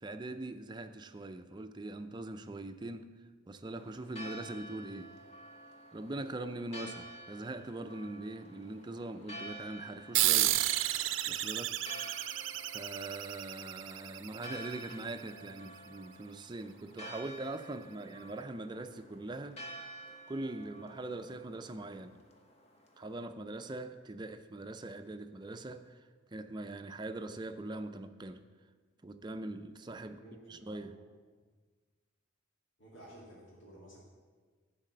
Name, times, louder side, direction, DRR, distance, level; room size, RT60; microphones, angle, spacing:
voice 1, 0.0-3.1 3.5-5.1 5.9-10.6 11.3-11.8 12.5-19.6 20.3-22.2 23.0-26.0 26.3-28.4 29.0-30.2 30.5-31.0, right 2 dB, 25° right, 9 dB, 0.4 m, -42 dB
Church bell, 3.8-23.2, right 1 dB, 35° left, 1.0 m, -51 dB
sound 1, 10.1-15.1, right 14 dB, 80° right, 0.5 m, -32 dB
voice 2, 30.2-31.0 32.8-34.0, right 1 dB, 70° left, -8 dB, 2.3 m, -54 dB
11.5 x 4.1 x 7.8 m, 1.5 s
head